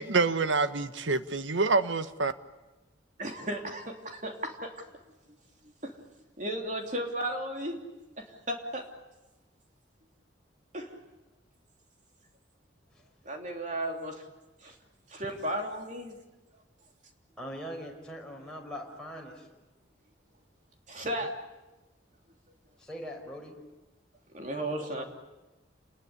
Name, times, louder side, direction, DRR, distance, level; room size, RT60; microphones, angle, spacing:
voice 1, 0.0-2.3, right 3 dB, 90° right, 1.3 m, -27 dB
voice 2, 3.2-4.7 5.8-6.0 6.4-7.8 8.2-8.9 10.7-10.9 13.2-14.2 14.6-14.7 15.1-16.2 20.9-21.4 24.3-25.0, right 1 dB, 40° right, 3.2 m, -35 dB
voice 3, 17.4-19.5 22.8-23.6 24.8-25.0, equal, 5° left, 5.3 m, -42 dB
29.0 x 20.5 x 9.7 m
head